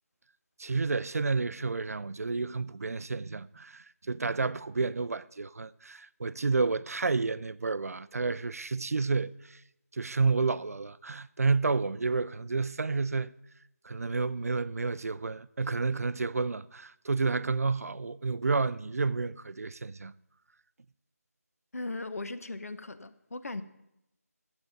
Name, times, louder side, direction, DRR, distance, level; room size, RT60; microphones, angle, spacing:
voice 1, 0.6-9.6 9.9-13.3 13.8-20.1, right 4 dB, 65° right, 0.4 m, -30 dB
voice 2, 21.7-23.6, left 2 dB, 65° left, 0.8 m, -38 dB
12.5 x 8.0 x 5.0 m
figure-of-eight pair, 170°, 9 cm